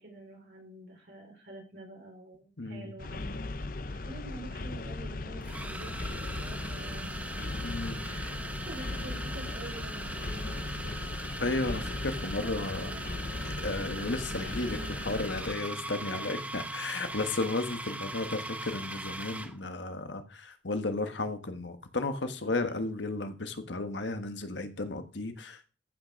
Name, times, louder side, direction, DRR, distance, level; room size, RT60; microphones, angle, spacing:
voice 1, 0.0-3.4 4.0-7.1 7.4-7.5 8.0-11.2 11.7-13.2 14.0-15.0 16.1-16.2 17.1-17.5 22.4-22.9, right 2 dB, 65° right, 0 dB, 5.1 m, -48 dB
voice 2, 2.6-2.9 7.6-8.4 11.4-12.9 13.4-14.8 15.0-25.7, left 2 dB, 80° left, 8 dB, 1.5 m, -34 dB
sound 1, 3.0-15.6, left 2 dB, 50° left, 0.8 m, -38 dB
sound 2, 4.2-4.3 5.4-19.6, right 2 dB, 10° right, 0.9 m, -40 dB
14.5 x 6.0 x 5.3 m, 0.35 s
head